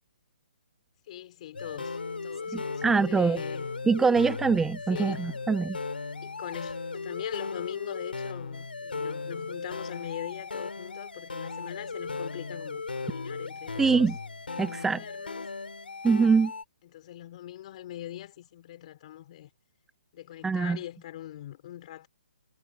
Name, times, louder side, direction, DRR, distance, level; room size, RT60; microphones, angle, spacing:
voice 1, 1.1-3.7 4.9-5.3 6.2-14.1 14.7-15.5 16.8-19.5 20.1-22.1, left 13 dB, 45° left, 4.0 m, -42 dB
sound 1, 1.5-16.6, left 4 dB, 90° left, 4.5 m, -36 dB
voice 2, 2.5-3.4 3.9-5.8 13.8-14.2 14.6-15.0 16.0-16.5 20.4-20.8, right 5 dB, 5° right, 0.8 m, -24 dB
hypercardioid pair, 145°, 5 cm